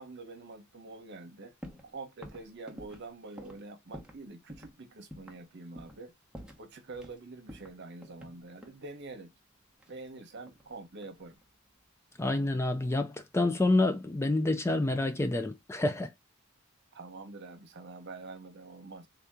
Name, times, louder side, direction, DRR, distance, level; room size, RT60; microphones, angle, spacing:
voice 1, 0.0-1.5 1.8-6.1 6.6-9.3 9.9-11.4 16.9-19.1, right 3 dB, 55° right, 1.0 m, -46 dB
sound 1, 1.6-1.9 2.2-4.2 4.5-4.7 5.1-5.4 5.8-6.0 6.3-7.2 7.5-8.8 9.8-10.7 11.0-11.4, equal, 5° right, 0.8 m, -49 dB
voice 2, 12.2-16.1, left 2 dB, 15° left, 0.3 m, -28 dB
3.5 x 2.8 x 3.5 m
head